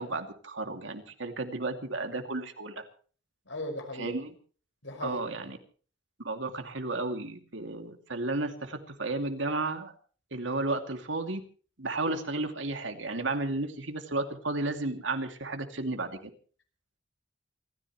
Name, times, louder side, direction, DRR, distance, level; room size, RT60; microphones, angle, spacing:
voice 1, 0.0-2.8 4.0-4.3 5.0-5.6 6.2-9.9 10.3-11.4 11.8-16.3, right 2 dB, 85° right, 6 dB, 2.6 m, -33 dB
voice 2, 3.5-4.2 4.8-5.5, left 1 dB, 85° left, 5 dB, 5.6 m, -38 dB
27.5 x 14.5 x 3.2 m, 0.41 s
head